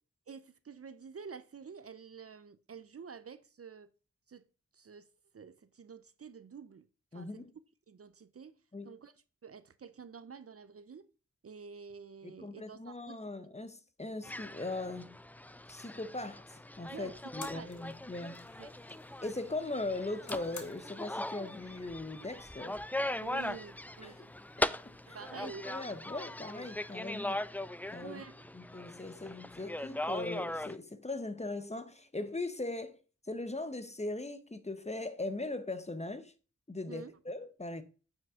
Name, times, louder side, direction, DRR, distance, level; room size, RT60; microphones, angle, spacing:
voice 1, 0.3-3.9 4.3-4.4 4.7-5.1 5.3-6.9 7.1-7.5 7.9-8.6 8.8-9.1 9.4-11.1 11.4-13.2 16.9-17.9 18.6-18.7 23.2-24.3 25.1-25.9 28.0-28.4 36.9-37.2, right 6 dB, 50° right, 0.6 m, -49 dB
voice 2, 7.1-7.5 8.7-8.9 12.2-15.2 15.7-18.4 19.2-22.8 24.0-24.2 24.6-24.8 25.1-27.4 27.9-28.2 28.5-33.0 33.3-36.3 36.7-37.8, left 2 dB, 20° left, 0.8 m, -40 dB
sound 1, 14.2-30.8, left 1 dB, 5° left, 0.4 m, -40 dB
sound 2, 16.4-27.0, left 4 dB, 75° left, 1.4 m, -57 dB
9.1 x 5.9 x 3.6 m
wide cardioid pair, 70°, 30 cm